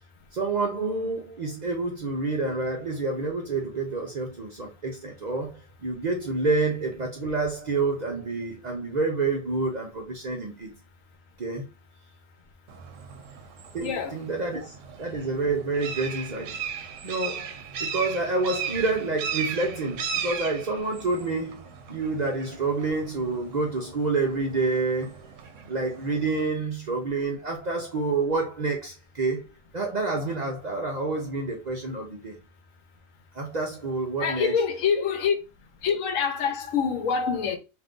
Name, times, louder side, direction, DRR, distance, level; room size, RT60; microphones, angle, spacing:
voice 1, 0.3-5.5 5.8-10.7 11.4-11.7 13.7-14.7 15.0-16.6 17.0-17.5 17.8-25.2 25.7-29.5 29.7-32.4 33.4-34.5, right 3 dB, 50° right, 0.5 m, -28 dB
sound 1, 12.7-26.5, right 7 dB, 75° right, 0.9 m, -37 dB
voice 2, 13.8-14.2 34.2-35.3 35.8-37.6, left 6 dB, 85° left, 1.0 m, -25 dB
2.6 x 2.5 x 3.5 m
omnidirectional pair, 1.3 m